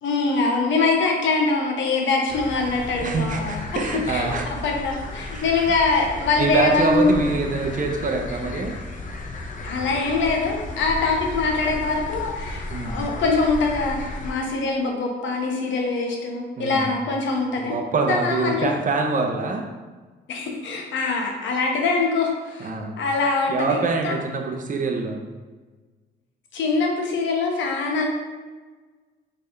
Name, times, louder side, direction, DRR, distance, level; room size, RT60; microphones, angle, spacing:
voice 1, 0.0-3.6 4.1-7.3 9.6-17.8 18.0-18.7 20.3-22.7 23.0-24.2 26.5-28.1, left 3 dB, 70° left, 1 dB, 1.0 m, -23 dB
sound 1, 2.3-14.3, left 2 dB, 40° left, 0.6 m, -34 dB
voice 2, 3.0-4.4 5.2-5.4 6.4-8.7 12.7-13.0 16.6-16.9 17.6-19.7 22.6-22.9 23.5-25.2, right 3 dB, 40° right, 2 dB, 0.8 m, -25 dB
3.9 x 3.7 x 3.4 m, 1.3 s
cardioid pair, 90°, 20 cm